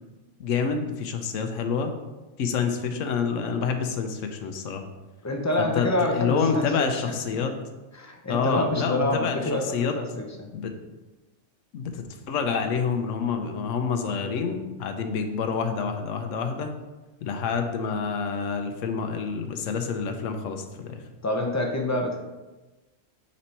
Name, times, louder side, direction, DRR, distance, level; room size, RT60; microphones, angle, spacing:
voice 1, 0.4-1.9 2.4-4.8 5.6-7.5 8.3-9.9 10.5-10.7 11.7-16.7 17.2-21.0, left 5 dB, 85° left, 6 dB, 1.0 m, -28 dB
voice 2, 5.2-7.0 7.3-7.5 7.9-10.5 21.2-22.2, left 1 dB, 25° left, 2 dB, 0.4 m, -27 dB
5.2 x 4.2 x 4.3 m, 1.1 s
omnidirectional pair, 1.3 m